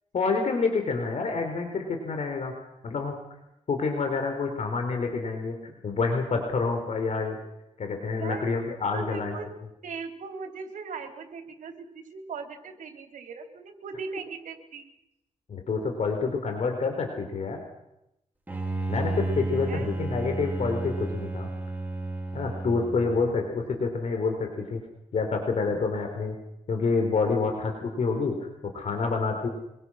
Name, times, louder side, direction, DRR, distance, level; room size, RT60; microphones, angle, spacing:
voice 1, 0.1-2.5 2.8-3.1 3.7-5.6 5.8-7.4 7.8-9.3 15.5-17.6 18.9-21.5 22.3-24.8 25.1-26.3 26.7-28.4 28.7-29.5, left 4 dB, 60° left, 4 dB, 4.0 m, -28 dB
voice 2, 8.9-9.5 9.8-14.9 19.6-19.9, right 5 dB, 85° right, 6 dB, 3.3 m, -39 dB
Bowed string instrument, 18.5-23.4, right 2 dB, 15° right, 4.7 m, -32 dB
25.0 x 24.0 x 6.4 m, 0.87 s
wide cardioid pair, 115°, 13 cm